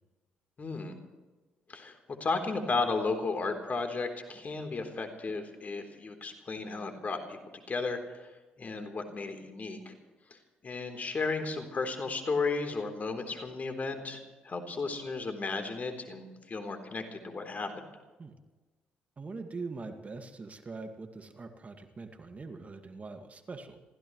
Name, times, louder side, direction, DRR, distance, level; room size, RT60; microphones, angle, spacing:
voice 1, 0.6-1.0 1.7-8.3 8.6-9.9 10.3-17.9, left 3 dB, 40° left, 6 dB, 3.6 m, -34 dB
voice 2, 19.2-23.8, right 3 dB, 35° right, 6 dB, 2.1 m, -42 dB
27.5 x 16.0 x 3.2 m, 1.2 s
hypercardioid pair, 55°, 4 cm